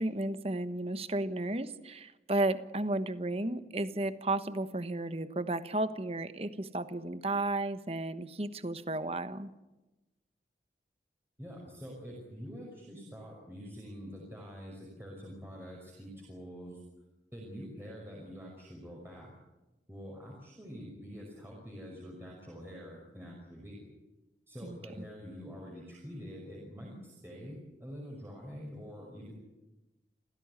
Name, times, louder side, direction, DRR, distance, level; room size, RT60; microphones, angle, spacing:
voice 1, 0.0-9.5 24.6-25.1, right 2 dB, 35° right, 12 dB, 1.2 m, -33 dB
voice 2, 11.4-16.8 17.3-19.3 19.9-23.9 24.5-29.4, equal, 15° right, -2 dB, 5.8 m, -46 dB
28.5 x 16.5 x 9.7 m, 1.0 s
head